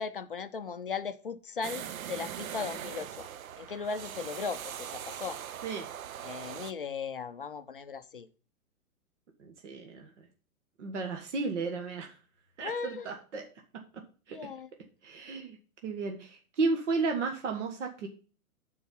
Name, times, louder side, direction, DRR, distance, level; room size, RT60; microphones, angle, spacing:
voice 1, 0.0-3.3 3.6-5.4 6.2-8.3 12.6-13.1 14.3-14.7, left 5 dB, 40° left, 0.4 m, -37 dB
sound 1, 1.6-6.7, right 9 dB, 70° right, 0.7 m, -41 dB
voice 2, 9.4-10.1 10.8-12.1 12.6-13.5 14.3-14.4 15.0-15.6 15.8-18.1, right 4 dB, 55° right, 1.6 m, -33 dB
10.0 x 4.7 x 5.5 m
hypercardioid pair, 175°, 43 cm